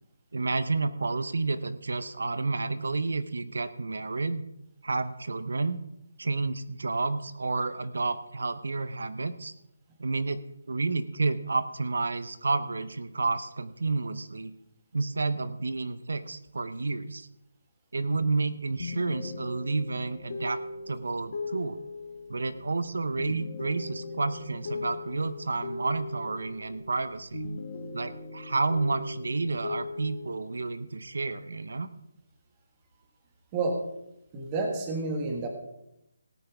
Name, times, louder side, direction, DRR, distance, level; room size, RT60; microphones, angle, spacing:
voice 1, 0.3-4.4 4.8-5.8 6.2-9.5 10.0-14.5 14.9-17.3 17.9-20.6 20.9-21.9 22.3-27.5 27.9-31.9, right 3 dB, 75° right, 12 dB, 0.8 m, -30 dB
sound 1, 18.8-27.1 27.3-30.4, left 3 dB, 45° left, 1.7 m, -39 dB
voice 2, 34.3-35.5, right 3 dB, 15° right, 2 dB, 1.2 m, -29 dB
17.5 x 9.5 x 3.5 m, 0.85 s
hypercardioid pair, 180°, 0 cm